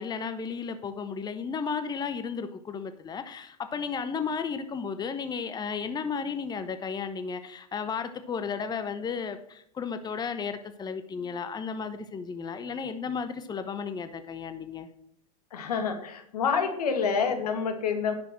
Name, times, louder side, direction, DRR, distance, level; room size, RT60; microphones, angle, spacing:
voice 1, 0.0-14.9, left 6 dB, 20° left, 10 dB, 0.9 m, -34 dB
voice 2, 15.5-18.1, left 6 dB, 85° left, 7 dB, 2.0 m, -27 dB
10.5 x 6.3 x 5.9 m, 0.70 s
hypercardioid pair, 105°, 19 cm